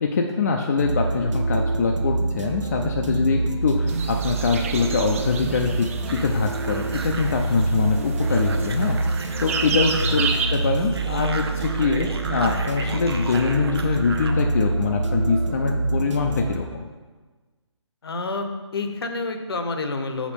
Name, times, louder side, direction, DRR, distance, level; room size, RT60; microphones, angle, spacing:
voice 1, 0.0-9.0 9.4-16.9, left 4 dB, 35° left, 2 dB, 0.4 m, -24 dB
sound 1, 0.8-16.6, right 3 dB, 85° right, 0.8 m, -26 dB
sound 2, 3.9-10.5, right 6 dB, 30° right, 0.5 m, -32 dB
sound 3, 6.1-14.4, right 4 dB, 55° right, 0.8 m, -36 dB
voice 2, 18.0-20.3, left 3 dB, 55° left, 6 dB, 0.8 m, -29 dB
6.5 x 5.1 x 5.2 m, 1.3 s
figure-of-eight pair, 160°, 15 cm